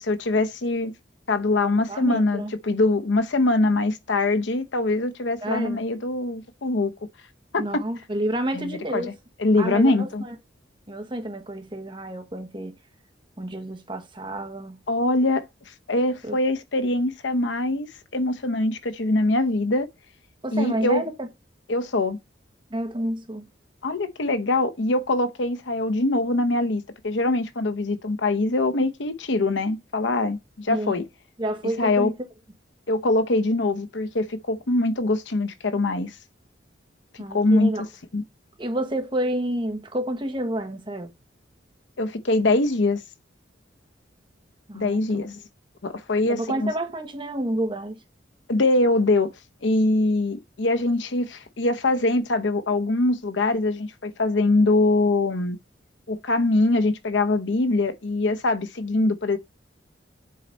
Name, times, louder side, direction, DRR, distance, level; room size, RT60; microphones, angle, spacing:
voice 1, 0.1-0.9 1.3-6.9 7.5-7.8 8.5-9.0 9.4-10.2 14.9-15.5 15.9-17.9 18.1-19.9 20.5-21.0 21.7-22.2 23.8-31.0 31.8-32.1 32.9-36.1 37.3-37.7 38.1-38.2 42.0-43.0 44.7-45.4 45.8-46.7 48.5-49.3 49.6-55.6 56.1-59.4, left 2 dB, 80° left, 0.8 m, -23 dB
voice 2, 1.7-2.5 5.4-5.8 7.6-9.1 9.6-10.3 10.9-12.7 13.4-14.8 16.2-16.4 20.4-21.3 22.7-23.4 30.7-30.9 31.4-32.1 37.2-37.8 38.6-41.1 44.7-45.2 46.2-47.9, right 1 dB, 25° right, 1.2 m, -29 dB
7.7 x 4.0 x 4.3 m
head